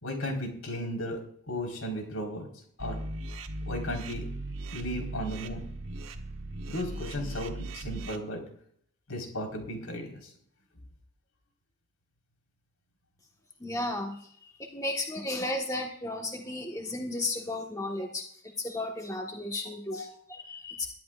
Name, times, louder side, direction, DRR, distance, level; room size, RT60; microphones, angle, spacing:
voice 1, 0.0-1.2 1.5-2.5 2.8-3.0 3.7-4.3 4.7-5.7 6.7-8.4 9.1-10.3 19.2-19.3 19.9-20.1, equal, 85° left, 2 dB, 4.6 m, -35 dB
sound 1, 2.8-8.2, right 1 dB, 75° right, 1.4 m, -38 dB
voice 2, 13.6-18.3 18.6-20.9, left 2 dB, 15° left, 1 dB, 1.5 m, -34 dB
23.0 x 12.0 x 2.5 m, 0.62 s
head